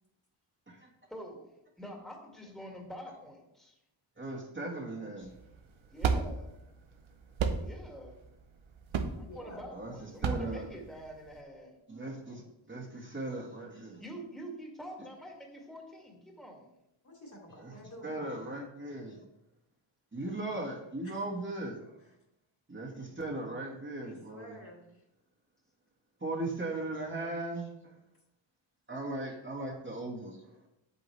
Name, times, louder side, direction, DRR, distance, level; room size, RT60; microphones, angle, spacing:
voice 1, 1.1-1.5 1.8-3.8 5.9-6.6 7.6-8.2 9.1-11.7 14.0-16.7, equal, ahead, -1 dB, 2.0 m, -46 dB
voice 2, 4.2-5.3 9.7-9.9 10.2-10.7 11.9-12.4 12.7-14.0 17.6-17.7 18.0-19.2 20.1-22.0 22.7-24.6 26.2-27.9 28.9-30.4, right 2 dB, 25° right, -2 dB, 1.6 m, -38 dB
sound 1, 5.2-11.4, right 5 dB, 75° right, 1.0 m, -34 dB
voice 3, 9.1-9.8 17.0-18.4 21.0-21.2 22.0-22.2 24.0-25.0 28.9-29.1, left 1 dB, 35° left, -1 dB, 2.7 m, -51 dB
8.2 x 8.2 x 3.2 m, 0.83 s
wide cardioid pair, 90°, 48 cm